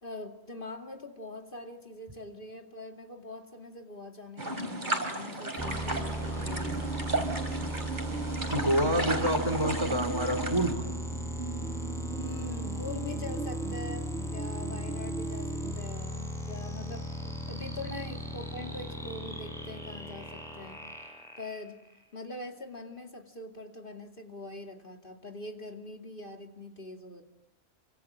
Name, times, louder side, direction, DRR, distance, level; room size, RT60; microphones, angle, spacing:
voice 1, 0.0-7.3 12.2-20.8 21.4-21.8 22.1-27.2, left 2 dB, 50° left, 3 dB, 2.7 m, -43 dB
sound 1, 4.4-10.7, right 1 dB, 45° right, 4.1 m, -34 dB
sound 2, 5.6-22.0, equal, ahead, 6.1 m, -37 dB
sound 3, 6.6-15.7, right 5 dB, 85° right, 2.7 m, -39 dB
voice 2, 8.5-10.7, equal, 25° right, 6 dB, 3.4 m, -27 dB
29.0 x 25.5 x 7.5 m, 0.93 s
omnidirectional pair, 1.1 m